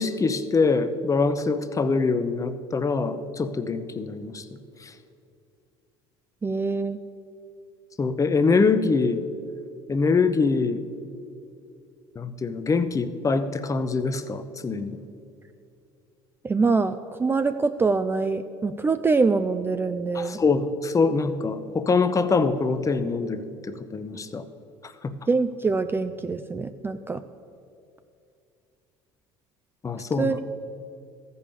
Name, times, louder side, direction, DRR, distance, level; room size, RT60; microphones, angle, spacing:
voice 1, 0.0-4.4 4.8-4.9 8.0-9.2 9.9-10.8 12.2-15.0 20.1-24.5 24.8-25.1 29.8-30.4, left 4 dB, 25° left, 11 dB, 0.7 m, -24 dB
voice 2, 6.4-7.0 16.4-20.4 25.3-27.2 30.2-30.4, right 4 dB, 15° right, 10 dB, 0.3 m, -24 dB
13.5 x 5.5 x 6.8 m, 2.5 s
supercardioid pair, 95°, 13 cm